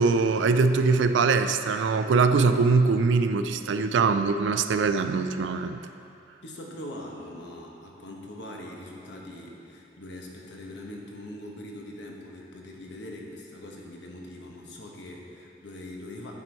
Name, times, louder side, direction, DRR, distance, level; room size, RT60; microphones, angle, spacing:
voice 1, 0.0-5.8, right 4 dB, 85° right, 9 dB, 0.4 m, -22 dB
voice 2, 6.4-16.3, left 1 dB, 75° left, -1 dB, 1.0 m, -42 dB
9.6 x 4.5 x 4.5 m, 2.7 s
head